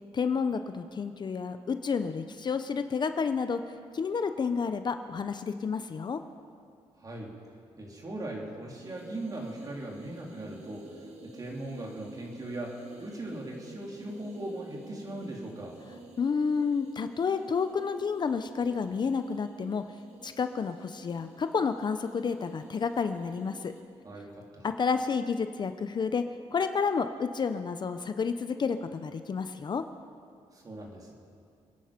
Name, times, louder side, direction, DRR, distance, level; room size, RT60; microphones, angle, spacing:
voice 1, 0.1-6.2 16.2-19.8 20.2-23.7 24.6-26.2 26.5-29.8, left 5 dB, 40° left, 9 dB, 0.7 m, -30 dB
voice 2, 7.0-7.3 7.8-15.8 24.0-24.7 30.5-31.1, right 1 dB, 35° right, -1 dB, 3.5 m, -39 dB
sound 1, 8.8-23.8, right 2 dB, 85° right, 2.2 m, -50 dB
27.5 x 10.5 x 5.2 m, 2.3 s
cardioid pair, 100°, 11 cm